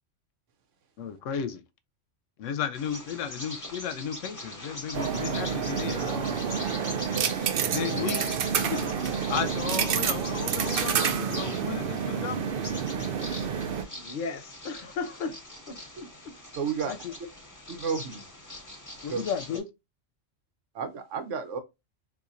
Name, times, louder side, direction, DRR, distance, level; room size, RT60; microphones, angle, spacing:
voice 1, 1.0-1.6 2.4-6.4 7.7-8.3 8.5-8.9 9.3-12.5 16.8-17.1 19.0-19.6, left 7 dB, 80° left, 0.9 m, -34 dB
Bird vocalization bird call bird song, 2.7-19.6, left 1 dB, 15° left, 1.0 m, -42 dB
sound 1, 4.9-13.8, right 7 dB, 60° right, 0.6 m, -29 dB
voice 2, 13.9-15.4 15.7-16.3, left 4 dB, 60° left, 0.5 m, -36 dB
voice 3, 16.6-16.9 17.7-18.2 19.1-19.2 20.7-21.6, right 6 dB, 80° right, 1.1 m, -31 dB
4.1 x 2.6 x 2.4 m
omnidirectional pair, 1.3 m